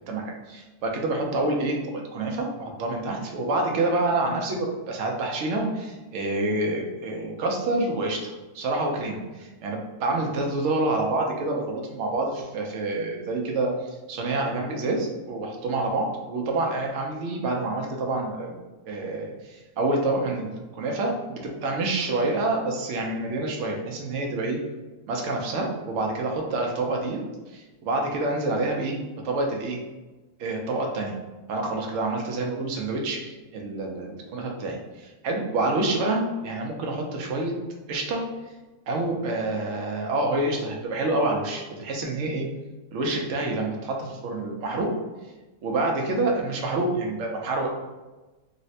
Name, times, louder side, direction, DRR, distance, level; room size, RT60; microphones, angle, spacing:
voice 1, 0.1-1.8 2.1-18.6 18.9-24.6 25.1-27.2 27.5-29.0 29.2-29.8 30.4-31.2 31.5-37.5 37.9-38.2 38.9-42.5 42.9-44.9 45.6-47.7, right 2 dB, 65° right, 0 dB, 0.7 m, -27 dB
4.0 x 2.0 x 2.7 m, 1.2 s
omnidirectional pair, 1.7 m